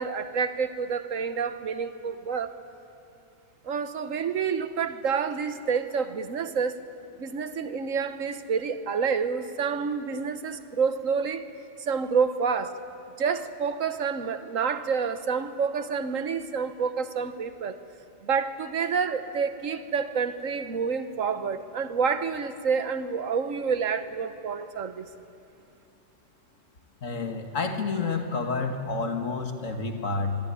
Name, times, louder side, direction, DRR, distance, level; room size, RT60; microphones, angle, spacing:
voice 1, 0.0-2.5 3.6-6.8 7.2-11.4 11.9-12.8 13.2-17.8 18.2-25.1, right 6 dB, 90° right, 11 dB, 1.5 m, -28 dB
voice 2, 27.0-30.4, left 4 dB, 80° left, 5 dB, 2.3 m, -29 dB
24.0 x 22.5 x 10.0 m, 2.8 s
omnidirectional pair, 1.3 m